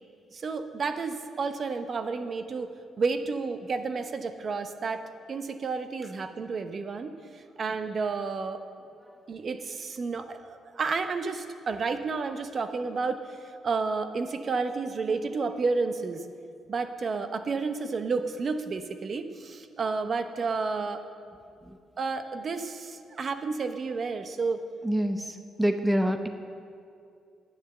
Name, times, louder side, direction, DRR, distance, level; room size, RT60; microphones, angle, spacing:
voice 1, 0.3-2.7 3.0-5.0 5.3-8.6 9.3-13.4 13.6-16.3 16.7-21.0 22.0-24.6, right 4 dB, 45° right, 9 dB, 0.8 m, -31 dB
voice 2, 24.8-26.3, equal, 10° right, 7 dB, 0.7 m, -26 dB
11.5 x 9.3 x 6.7 m, 2.4 s
cardioid pair, 90°, 0 cm